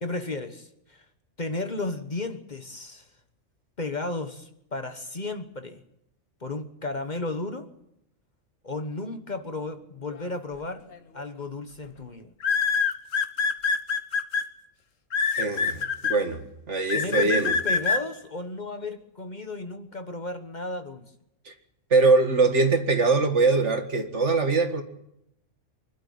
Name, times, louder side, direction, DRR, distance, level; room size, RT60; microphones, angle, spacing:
voice 1, 0.0-1.0 1.4-3.1 3.8-5.8 6.4-7.7 8.6-10.8 11.1-12.3 16.9-21.0, left 2 dB, 35° left, 8 dB, 1.3 m, -34 dB
sound 1, 10.9-11.2 12.4-14.4 15.1-16.2 16.9-18.0, left 5 dB, 80° left, 1.6 m, -24 dB
voice 2, 15.4-17.5 21.5-21.6 21.9-24.8, right 3 dB, 65° right, 6 dB, 2.2 m, -22 dB
24.5 x 12.0 x 9.3 m, 0.81 s
omnidirectional pair, 1.3 m